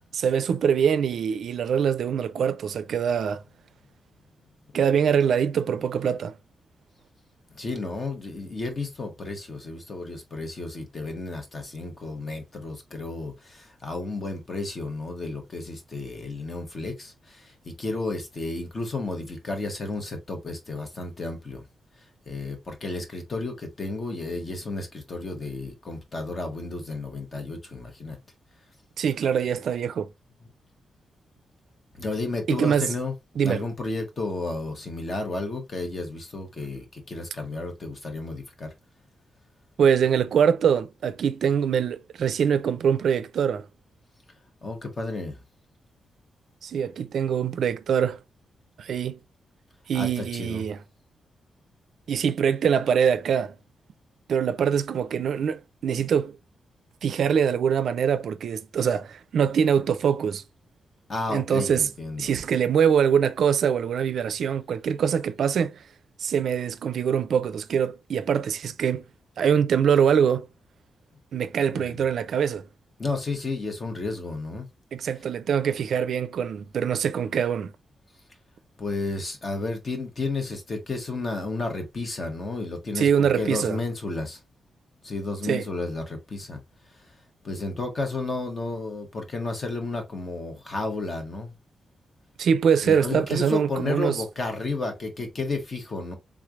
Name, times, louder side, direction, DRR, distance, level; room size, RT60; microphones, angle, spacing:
voice 1, 0.1-3.4 4.7-6.3 29.0-30.1 32.5-32.9 33.4-33.6 39.8-43.6 46.6-48.2 48.8-49.2 49.9-50.8 52.1-53.6 54.3-56.4 57.0-60.4 61.3-61.9 62.2-65.8 66.2-69.0 69.4-70.5 71.3-72.7 74.9-77.7 83.0-83.8 85.4-85.7 92.4-94.2, right 7 dB, 70° right, 0.4 m, -23 dB
voice 2, 7.5-21.7 22.0-28.2 31.9-33.1 33.4-38.7 44.6-45.4 49.9-50.7 61.1-62.4 71.7-72.0 73.0-74.7 78.8-84.4 85.0-86.6 86.9-87.2 87.4-91.5 92.8-96.2, left 3 dB, 35° left, 1.1 m, -32 dB
3.6 x 3.2 x 2.4 m
wide cardioid pair, 150°, 0 cm